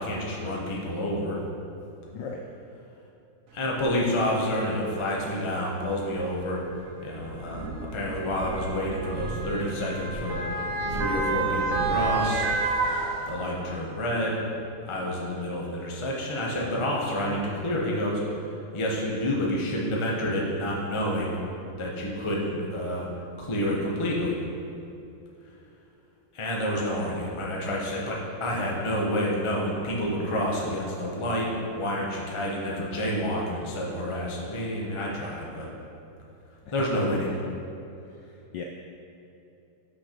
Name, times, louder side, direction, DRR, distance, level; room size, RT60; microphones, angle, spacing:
voice 1, 0.0-1.4 3.5-6.6 7.0-10.5 10.9-12.4 13.3-14.4 14.8-21.3 21.8-23.1 23.4-24.4 26.3-35.7 36.7-37.3, equal, 45° left, -3 dB, 0.4 m, -29 dB
voice 2, 2.1-2.4 36.6-36.8 38.2-38.6, left 5 dB, 80° left, 1 dB, 1.0 m, -38 dB
Motor vehicle (road) / Siren, 3.8-3.9 4.9-5.1 6.1-13.7 14.2-14.3, right 3 dB, 60° right, 0.8 m, -30 dB
sound 1, 7.1-12.5, right 1 dB, 20° right, 1.8 m, -37 dB
6.1 x 6.0 x 5.1 m, 2.8 s
omnidirectional pair, 2.4 m